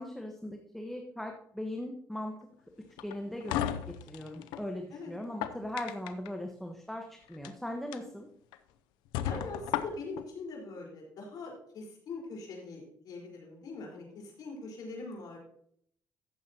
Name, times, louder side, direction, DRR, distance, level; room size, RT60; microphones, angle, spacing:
voice 1, 0.0-2.3 3.0-3.6 4.1-8.3, left 1 dB, 5° left, 2 dB, 1.3 m, -39 dB
sound 1, 3.0-4.6 5.2-6.3 7.3-7.5 7.9-8.0 8.5-8.6 9.1-10.2, left 11 dB, 90° left, 0.6 m, -35 dB
voice 2, 9.2-15.4, left 3 dB, 65° left, -1 dB, 4.5 m, -42 dB
14.5 x 7.3 x 2.9 m, 0.66 s
supercardioid pair, 80°, 7 cm